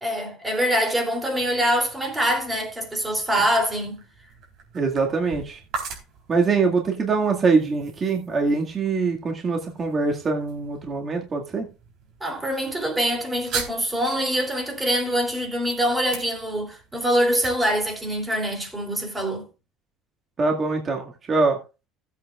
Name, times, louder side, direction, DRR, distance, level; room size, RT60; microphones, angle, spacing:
voice 1, 0.0-4.0 12.2-19.4, equal, 15° right, 3.1 m, -24 dB
sound 1, 1.1-18.9, right 5 dB, 60° right, 3.6 m, -41 dB
voice 2, 4.7-5.6 6.3-11.7 20.4-21.6, right 4 dB, 30° right, 2.0 m, -23 dB
16.5 x 8.3 x 2.4 m
cardioid pair, 125°, 0 cm